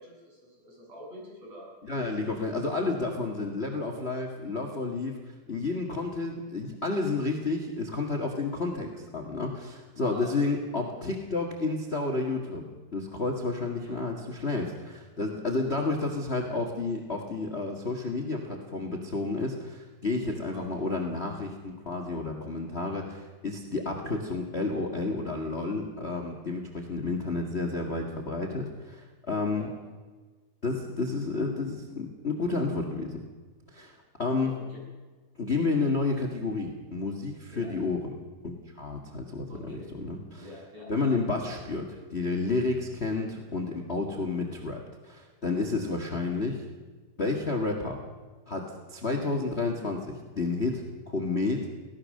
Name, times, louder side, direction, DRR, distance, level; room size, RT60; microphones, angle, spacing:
voice 1, 0.0-1.7 10.0-10.7 13.8-14.0 20.5-20.9 29.5-29.8 34.4-34.8 37.5-37.7 39.5-39.9 40.4-41.2, equal, 40° right, -3 dB, 8.9 m, -46 dB
voice 2, 1.8-5.2 5.5-12.6 12.9-29.7 30.6-33.2 33.7-34.5 35.4-38.0 38.4-40.4 40.9-41.8 42.1-46.6 47.2-48.0 48.5-51.7, left 3 dB, 40° left, 3 dB, 0.9 m, -31 dB
24.5 x 17.5 x 6.6 m, 1.4 s
omnidirectional pair, 4.5 m